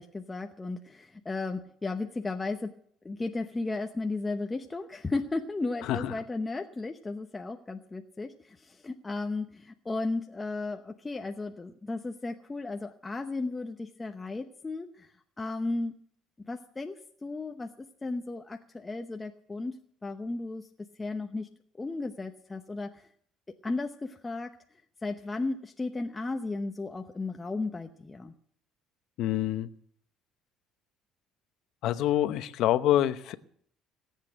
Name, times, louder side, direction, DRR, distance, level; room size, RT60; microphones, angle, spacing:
voice 1, 0.0-2.7 3.0-15.1 15.4-15.9 16.5-16.9 17.2-19.7 20.0-20.7 21.0-21.5 21.8-23.1 23.6-24.5 25.0-28.3, left 3 dB, 15° left, 4 dB, 0.9 m, -34 dB
voice 2, 29.2-29.7 31.8-33.4, left 12 dB, 70° left, 12 dB, 0.9 m, -26 dB
18.5 x 8.4 x 7.9 m, 0.63 s
cardioid pair, 115°, 0 cm